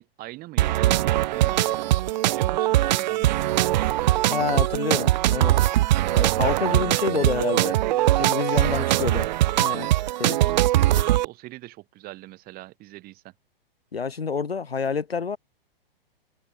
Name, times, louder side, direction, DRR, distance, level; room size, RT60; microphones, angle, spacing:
voice 1, 0.0-5.7 6.4-7.0 7.3-9.1 9.7-9.9 10.4-13.3, right 18 dB, 30° right, 4.3 m, -41 dB
sound 1, 0.6-11.3, right 15 dB, 50° right, 1.2 m, -21 dB
voice 2, 4.3-5.5 6.1-7.7 8.2-9.3 9.6-9.9 10.2-10.4 11.0-11.1 13.9-15.4, left 5 dB, 85° left, 0.9 m, -27 dB
figure-of-eight pair, 110°, 29 cm